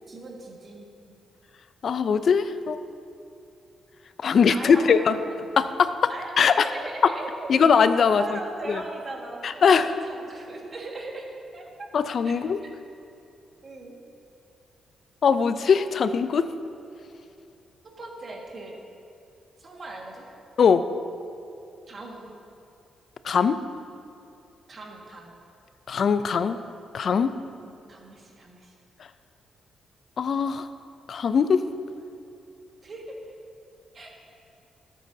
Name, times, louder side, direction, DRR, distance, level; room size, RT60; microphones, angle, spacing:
voice 1, 0.1-1.2 4.5-5.5 6.1-7.5 8.1-11.3 11.5-11.6 12.2-12.4 13.6-14.0 18.0-18.8 19.6-20.3 21.9-22.3 24.7-25.3 27.6-28.7 32.8-33.2 33.9-34.1, right 2 dB, 45° right, 0 dB, 1.7 m, -39 dB
voice 2, 1.8-2.8 4.2-5.2 5.6-5.9 6.4-6.7 7.0-7.1 7.5-8.4 8.7-8.8 9.4-9.9 11.9-12.6 15.2-16.5 20.6-20.9 23.2-23.6 25.9-26.6 26.9-27.3 30.2-30.7 31.1-31.6, left 6 dB, 60° left, 12 dB, 0.4 m, -21 dB
13.0 x 8.3 x 2.7 m, 2.6 s
cardioid pair, 75°, 0 cm